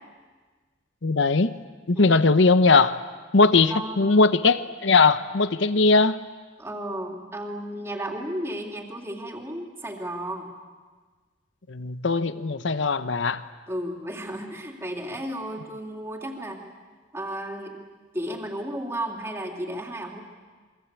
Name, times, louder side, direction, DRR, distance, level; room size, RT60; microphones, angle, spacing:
voice 1, 1.0-1.5 1.9-3.0 3.3-6.2 11.7-13.4, left 3 dB, 70° left, 12 dB, 0.9 m, -20 dB
voice 2, 3.7-4.2 6.6-10.5 13.7-16.6 17.1-17.8 18.1-20.2, right 1 dB, 15° right, 1 dB, 3.2 m, -33 dB
28.5 x 23.0 x 8.4 m, 1.4 s
head